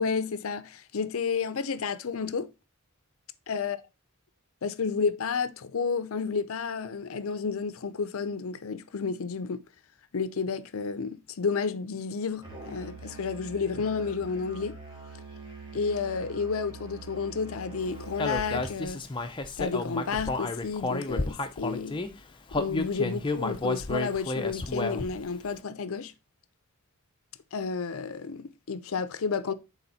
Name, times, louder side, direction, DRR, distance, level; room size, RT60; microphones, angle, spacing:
voice 1, 0.0-2.5 3.5-3.8 4.6-9.6 10.1-14.8 15.7-19.0 19.6-22.0 22.5-26.1 27.5-29.5, left 5 dB, 65° left, 0.5 m, -31 dB
Musical instrument, 12.4-18.8, right 3 dB, 20° right, 1.7 m, -44 dB
Human voice, 18.2-22.1 22.5-25.2, left 2 dB, 20° left, 0.6 m, -31 dB
7.0 x 4.2 x 4.1 m
head